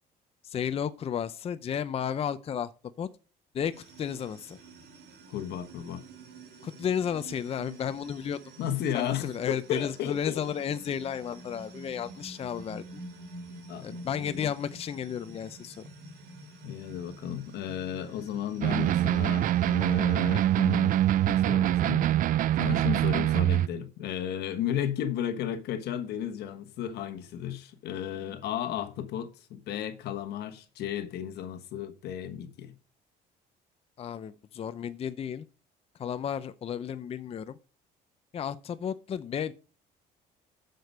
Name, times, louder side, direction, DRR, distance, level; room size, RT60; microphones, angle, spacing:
voice 1, 0.4-2.7 3.0-3.1 3.5-3.7 4.0-4.6 6.6-8.4 8.9-13.0 13.8-15.9 34.0-35.5 36.0-37.6 38.3-39.5, left 8 dB, 35° left, 0.5 m, -33 dB
sound 1, 3.7-21.4, right 2 dB, 75° right, 3.3 m, -48 dB
voice 2, 5.3-6.0 8.6-10.4 13.7-14.5 16.6-22.2 22.6-32.7, left 10 dB, 75° left, 1.2 m, -34 dB
sound 2, 18.6-23.7, right 12 dB, 55° right, 0.4 m, -24 dB
7.8 x 6.7 x 5.3 m
cardioid pair, 110°, 17 cm